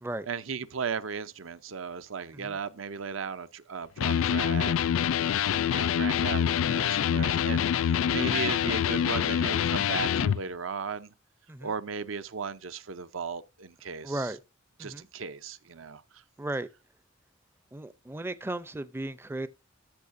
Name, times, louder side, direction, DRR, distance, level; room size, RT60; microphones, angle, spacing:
voice 1, 0.3-4.7 5.1-11.1 11.6-14.3 14.8-16.0, right 6 dB, 75° right, 0.7 m, -36 dB
Electric guitar, 4.0-10.4, left 9 dB, 85° left, 0.4 m, -26 dB
voice 2, 14.0-14.4 14.8-15.1 16.4-16.7 17.7-19.5, right 1 dB, 10° right, 0.4 m, -35 dB
13.5 x 6.4 x 2.6 m
head